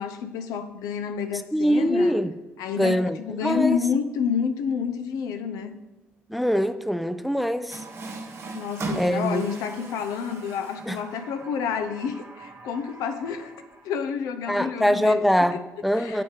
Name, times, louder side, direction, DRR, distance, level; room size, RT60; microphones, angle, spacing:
voice 1, 0.0-2.1 2.6-5.8 8.6-13.5 13.8-15.3 15.5-15.6 15.9-16.2, left 7 dB, 75° left, 8 dB, 0.5 m, -29 dB
voice 2, 1.5-2.3 2.8-3.8 6.3-7.8 8.9-9.4 10.9-11.0 14.5-16.2, equal, ahead, 11 dB, 0.4 m, -23 dB
Water tap faucet, 7.7-14.0, right 2 dB, 45° right, 0.9 m, -39 dB
6.9 x 3.1 x 4.8 m, 1.2 s
hypercardioid pair, 50°, 6 cm